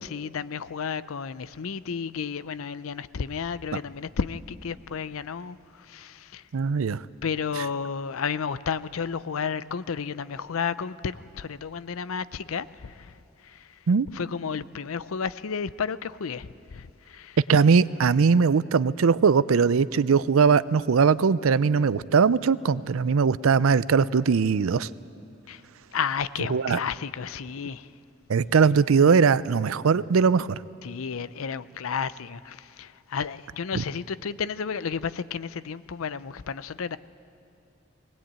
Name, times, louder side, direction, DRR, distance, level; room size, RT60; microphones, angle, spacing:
voice 1, 0.0-6.4 7.2-13.1 13.4-13.7 14.1-17.4 25.5-25.6 25.9-27.9 30.8-37.0, left 6 dB, 85° left, 0.5 m, -32 dB
voice 2, 6.5-7.0 13.9-14.1 17.5-24.9 26.5-26.8 28.3-30.6 33.7-33.8, right 5 dB, 80° right, 0.5 m, -20 dB
21.0 x 19.0 x 8.8 m
head